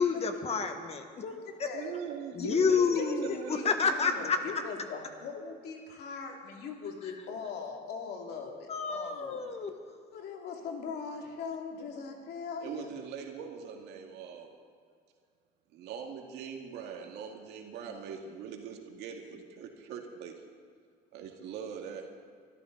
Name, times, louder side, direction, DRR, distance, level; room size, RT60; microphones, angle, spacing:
voice 1, 0.0-1.0 2.3-4.4 8.7-9.7, left 5 dB, 40° left, 6 dB, 1.7 m, -28 dB
voice 2, 1.2-2.0 2.3-9.7 10.1-12.9, left 5 dB, 75° left, 1 dB, 2.7 m, -40 dB
voice 3, 1.7-4.1 12.6-14.5 15.7-20.3 21.1-22.1, right 7 dB, 90° right, 2 dB, 2.1 m, -42 dB
23.5 x 13.0 x 4.0 m, 2.1 s
cardioid pair, 110°, 17 cm